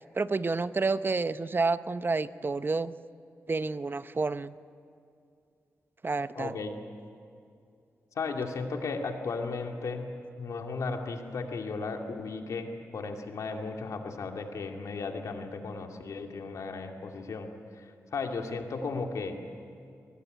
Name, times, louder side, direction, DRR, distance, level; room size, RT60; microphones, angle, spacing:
voice 1, 0.1-2.9 3.5-4.5 6.0-6.5, right 3 dB, 40° right, 13 dB, 0.8 m, -29 dB
voice 2, 6.3-6.7 8.2-10.1 10.4-17.5 17.8-19.4, left 4 dB, 75° left, 3 dB, 2.5 m, -35 dB
23.5 x 20.0 x 9.3 m, 2.4 s
cardioid pair, 50°, 6 cm